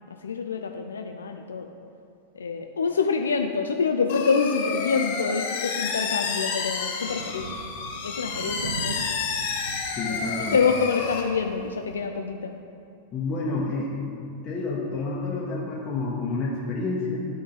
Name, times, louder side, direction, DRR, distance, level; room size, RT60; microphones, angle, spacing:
voice 1, 0.2-1.7 2.3-7.5 8.0-9.0 10.0-12.5, left 5 dB, 70° left, 4 dB, 0.4 m, -26 dB
sound 1, 4.1-11.2, left 5 dB, 50° left, 0.9 m, -30 dB
Thunder, 7.1-12.1, right 6 dB, 65° right, 0.3 m, -41 dB
voice 2, 9.9-10.6 13.1-14.2 14.4-17.2, left 3 dB, 30° left, -6 dB, 1.1 m, -29 dB
11.5 x 3.8 x 3.9 m, 2.5 s
figure-of-eight pair, 90°, 0 cm